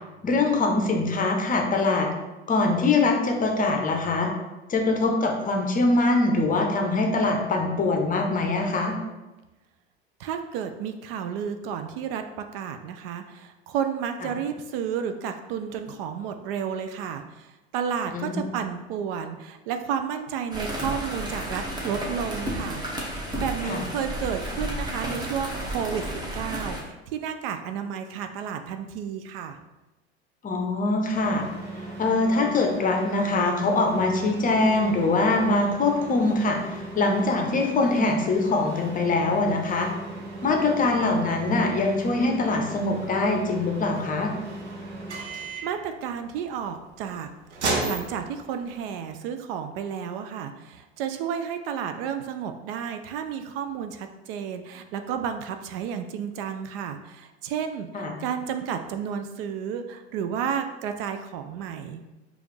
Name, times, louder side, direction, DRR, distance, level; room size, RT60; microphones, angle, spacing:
voice 1, 0.2-2.1 2.5-4.3 4.7-9.0 18.1-18.5 23.6-23.8 30.4-31.4 32.0-39.9 40.4-44.3 57.9-58.2, left 3 dB, 25° left, 2 dB, 0.7 m, -23 dB
voice 2, 10.2-22.8 23.2-29.6 45.6-62.0, right 7 dB, 60° right, 7 dB, 0.4 m, -32 dB
sound 1, 20.5-26.8, right 1 dB, 15° right, 1.0 m, -32 dB
sound 2, 31.1-48.9, right 2 dB, 85° right, 0.8 m, -36 dB
4.8 x 2.5 x 3.2 m, 1.1 s
hypercardioid pair, 80°, 33 cm